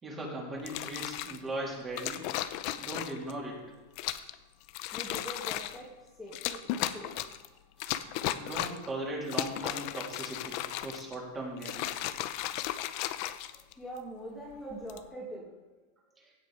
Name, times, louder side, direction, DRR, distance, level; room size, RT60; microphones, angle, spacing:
voice 1, 0.0-2.3 2.8-3.6 8.3-11.9, right 1 dB, 20° right, -3 dB, 3.2 m, -38 dB
sound 1, 0.6-1.4 2.0-3.3 4.0-4.3 4.7-5.8 6.3-7.5 7.8-8.9 9.2-11.2 11.6-14.0 14.7-15.1, left 13 dB, 50° left, 0.6 m, -35 dB
voice 2, 4.9-7.2 13.8-15.5, equal, 5° left, -5 dB, 2.2 m, -43 dB
16.5 x 6.3 x 5.0 m, 1.2 s
supercardioid pair, 145°, 0 cm